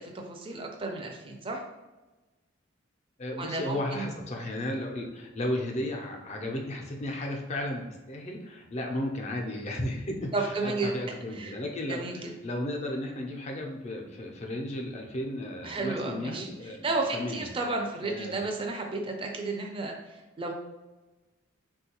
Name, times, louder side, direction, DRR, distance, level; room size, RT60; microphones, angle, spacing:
voice 1, 0.0-1.6 3.4-4.1 10.3-10.9 11.3-11.6 11.9-12.3 15.6-20.5, right 3 dB, 25° right, 2 dB, 0.4 m, -33 dB
voice 2, 3.2-16.9 17.1-17.5 18.0-18.4, left 1 dB, 35° left, 1 dB, 0.5 m, -34 dB
3.6 x 2.3 x 2.8 m, 1.1 s
head